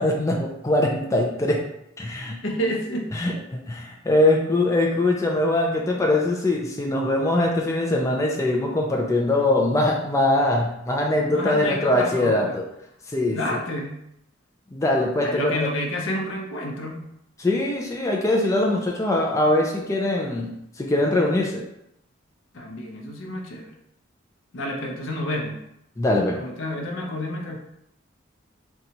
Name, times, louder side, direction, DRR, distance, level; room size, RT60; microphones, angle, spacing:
voice 1, 0.0-1.6 2.0-2.4 3.1-12.6 13.1-13.4 14.7-15.5 17.4-21.6 26.0-26.4, left 1 dB, 15° left, -1 dB, 0.4 m, -22 dB
voice 2, 2.2-3.1 11.2-12.5 13.3-14.0 15.2-17.0 22.5-23.7 24.5-25.6 26.3-27.6, left 1 dB, 85° left, 1 dB, 0.7 m, -29 dB
4.0 x 2.3 x 2.8 m, 0.79 s
head